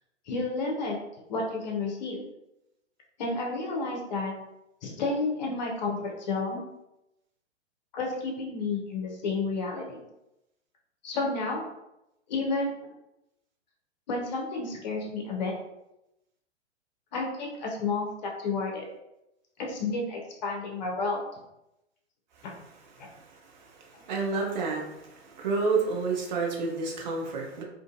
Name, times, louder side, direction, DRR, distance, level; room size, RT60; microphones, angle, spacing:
voice 1, 0.3-1.0 1.3-2.2 3.2-4.3 4.8-6.6 7.9-10.0 11.0-11.6 12.3-12.9 14.1-15.5 17.1-18.8 19.6-21.2 23.9-24.0, left 3 dB, 40° left, -1 dB, 0.6 m, -31 dB
voice 2, 23.0-27.6, right 4 dB, 40° right, -1 dB, 0.6 m, -30 dB
2.5 x 2.4 x 2.5 m, 0.88 s
figure-of-eight pair, 110°, 35 cm